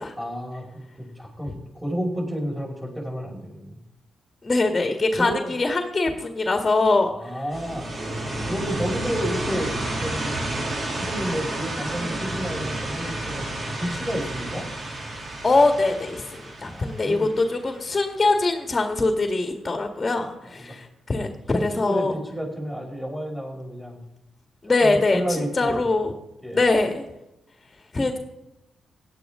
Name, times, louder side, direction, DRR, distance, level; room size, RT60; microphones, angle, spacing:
voice 1, 0.2-3.8 5.2-5.6 7.0-7.9 8.5-9.7 10.0-10.4 10.9-14.7 16.7-17.3 20.6-20.7 21.7-24.0 24.8-25.9 26.4-26.7, equal, 5° right, -1 dB, 5.5 m, -31 dB
voice 2, 4.4-7.3 15.4-22.1 24.6-26.2 26.5-27.0 27.9-28.2, left 3 dB, 30° left, 4 dB, 1.8 m, -23 dB
sound 1, 7.5-18.2, right 2 dB, 50° right, 2.8 m, -31 dB
17.0 x 10.5 x 3.8 m, 0.92 s
hypercardioid pair, 45°, 0 cm